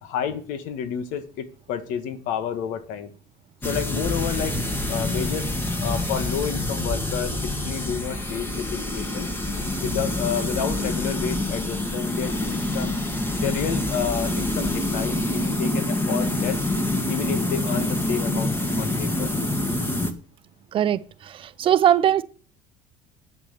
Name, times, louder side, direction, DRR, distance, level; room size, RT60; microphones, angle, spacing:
voice 1, 0.0-3.1 3.6-5.5 5.8-9.3 9.8-13.0 13.4-16.6 17.0-19.3, left 8 dB, 75° left, 1.6 m, -30 dB
sound 1, 3.6-20.1, left 1 dB, 15° left, 1.7 m, -26 dB
voice 2, 21.4-22.2, right 10 dB, 40° right, 0.6 m, -19 dB
11.5 x 8.2 x 6.9 m
cardioid pair, 145°, 14 cm